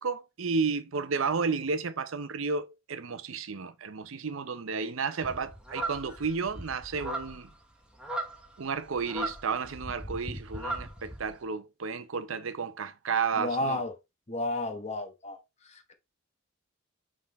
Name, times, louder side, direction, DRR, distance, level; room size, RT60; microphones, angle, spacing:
voice 1, 0.0-7.5 8.6-13.8, right 5 dB, 80° right, 0.6 m, -32 dB
sound 1, 5.2-11.4, right 1 dB, 5° right, 1.1 m, -38 dB
voice 2, 13.3-13.9 14.3-15.4 15.7-15.9, left 2 dB, 35° left, 1.1 m, -32 dB
6.0 x 3.8 x 4.2 m
head